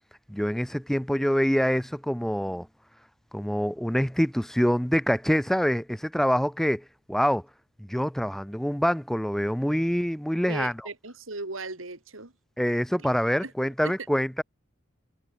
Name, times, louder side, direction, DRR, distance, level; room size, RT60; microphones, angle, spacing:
voice 1, 0.3-2.7 3.3-7.4 7.8-10.7 12.6-14.4, equal, ahead, 0.7 m, -25 dB
voice 2, 10.5-12.3 13.4-13.5 13.8-13.9, right 3 dB, 90° right, 3.1 m, -37 dB
head